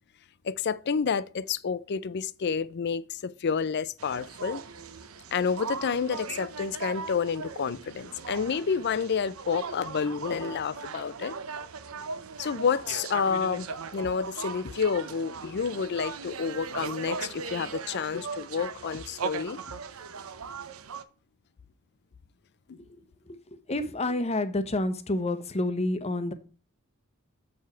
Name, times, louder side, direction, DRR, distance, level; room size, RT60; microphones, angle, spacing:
voice 1, 0.4-4.6 5.3-11.4 12.4-19.6 22.7-22.8, left 6 dB, 55° left, 0.5 m, -29 dB
sound 1, 4.0-21.0, right 5 dB, 80° right, 0.7 m, -39 dB
voice 2, 23.7-26.3, left 2 dB, 30° left, 0.8 m, -28 dB
7.4 x 4.8 x 4.4 m
head